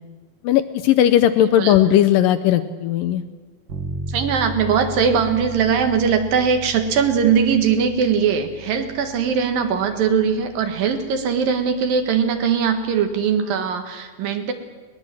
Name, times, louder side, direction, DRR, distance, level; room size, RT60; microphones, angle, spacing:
voice 1, 0.4-3.2, left 11 dB, 75° left, 10 dB, 2.2 m, -17 dB
Bass guitar, 3.7-13.4, right 1 dB, 50° right, 1.5 m, -37 dB
voice 2, 4.1-14.5, right 6 dB, 70° right, 6 dB, 3.2 m, -20 dB
21.5 x 19.5 x 7.7 m, 1.3 s
omnidirectional pair, 4.4 m